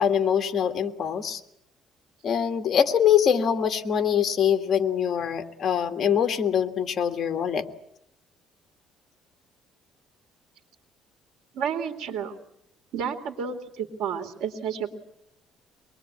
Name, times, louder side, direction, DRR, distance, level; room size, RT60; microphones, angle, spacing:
voice 1, 0.0-1.4 2.2-7.6, left 8 dB, 35° left, 7 dB, 1.7 m, -23 dB
voice 2, 11.5-12.4 12.9-14.9, right 7 dB, 85° right, 5 dB, 2.5 m, -31 dB
24.0 x 20.5 x 8.6 m, 0.76 s
cardioid pair, 160°, 0 cm